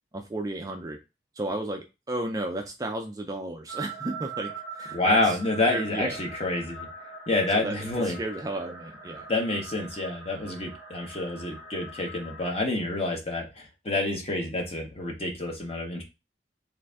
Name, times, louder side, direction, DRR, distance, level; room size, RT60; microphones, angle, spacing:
voice 1, 0.1-1.0 1.4-5.4 5.7-6.2 7.5-7.8 8.0-9.3, right 2 dB, 20° right, 4 dB, 0.3 m, -33 dB
sound 1, 3.7-12.6, right 4 dB, 60° left, 1.7 m, -42 dB
voice 2, 4.9-6.9 7.3-8.2 9.3-16.0, left 2 dB, 35° left, 1 dB, 0.9 m, -28 dB
3.2 x 2.5 x 3.4 m, 0.26 s
head